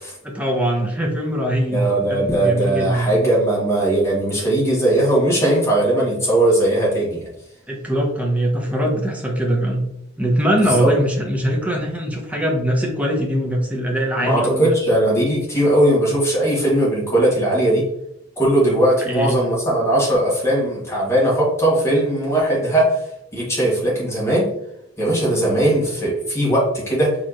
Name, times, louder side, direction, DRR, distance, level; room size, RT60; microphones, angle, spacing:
voice 1, 0.2-3.1 7.7-9.8 10.2-14.7 19.1-19.4, equal, 5° right, 0 dB, 0.9 m, -22 dB
voice 2, 1.7-7.3 10.6-10.9 14.2-17.9 18.4-23.0 23.3-24.5 25.0-27.2, right 1 dB, 15° left, -5 dB, 1.6 m, -19 dB
4.5 x 3.6 x 2.9 m, 0.81 s
head